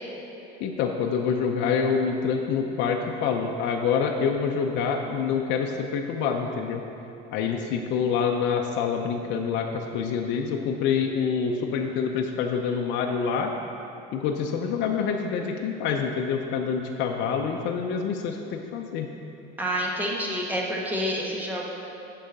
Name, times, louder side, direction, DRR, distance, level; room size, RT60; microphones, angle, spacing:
voice 1, 0.6-6.8 7.3-13.5 14.1-19.1, left 6 dB, 60° left, 2 dB, 0.6 m, -26 dB
voice 2, 19.6-21.7, equal, 10° right, -3 dB, 1.2 m, -28 dB
8.5 x 5.5 x 5.2 m, 2.9 s
cardioid pair, 135°, 21 cm